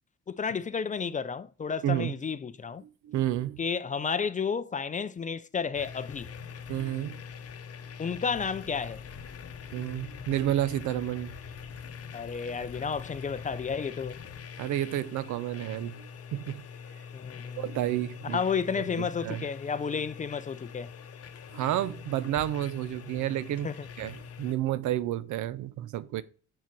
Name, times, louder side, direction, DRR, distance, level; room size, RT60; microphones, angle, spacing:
voice 1, 0.3-2.8 3.6-6.3 8.0-9.0 12.1-14.2 17.1-17.6 18.3-20.9 23.6-23.9, left 6 dB, 25° left, 0.4 m, -32 dB
voice 2, 1.8-2.1 3.0-3.6 6.7-7.2 9.7-11.3 14.6-16.6 17.6-18.4 19.0-19.5 21.5-23.7 24.0-26.2, right 13 dB, 80° right, 0.6 m, -30 dB
sound 1, 5.7-24.5, left 6 dB, 50° left, 0.8 m, -44 dB
5.7 x 4.7 x 4.5 m
cardioid pair, 90°, 30 cm